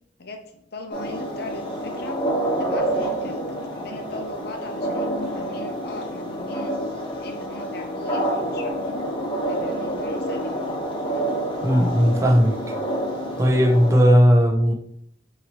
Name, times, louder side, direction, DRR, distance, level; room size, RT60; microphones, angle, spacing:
voice 1, 0.2-2.2 2.6-9.0 9.5-10.7, left 2 dB, 60° left, 0.7 m, -38 dB
sound 1, 0.9-14.0, right 1 dB, 30° left, 1.1 m, -28 dB
voice 2, 11.6-12.6 13.4-14.7, equal, 15° right, 0.5 m, -16 dB
5.3 x 2.9 x 2.9 m
head